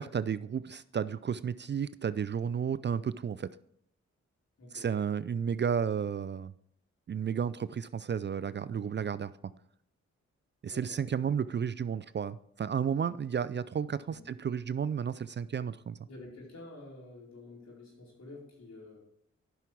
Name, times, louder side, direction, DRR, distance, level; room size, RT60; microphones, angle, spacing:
voice 1, 0.0-3.5 4.7-6.5 7.1-9.3 10.6-16.0, right 7 dB, 40° right, 17 dB, 0.4 m, -32 dB
voice 2, 4.6-4.9 10.7-11.0 14.1-14.2 16.0-19.0, left 2 dB, 60° left, -3 dB, 4.6 m, -49 dB
11.5 x 6.1 x 4.6 m, 0.69 s
supercardioid pair, 45°, 29 cm